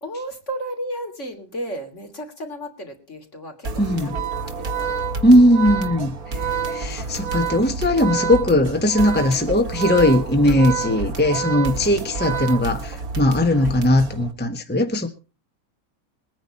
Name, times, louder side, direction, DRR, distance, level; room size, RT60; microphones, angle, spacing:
voice 1, 0.0-4.1 4.4-5.1 9.5-9.6 10.9-12.1 13.6-13.8, right 1 dB, 50° left, 4 dB, 3.4 m, -35 dB
sound 1, 3.6-14.3, right 2 dB, 80° right, 2.4 m, -31 dB
voice 2, 3.8-4.2 5.2-6.1 6.7-15.1, left 1 dB, 5° left, 6 dB, 1.3 m, -18 dB
Organ, 4.0-13.2, right 9 dB, 60° right, 2.1 m, -29 dB
21.5 x 9.7 x 4.3 m, 0.34 s
omnidirectional pair, 1.5 m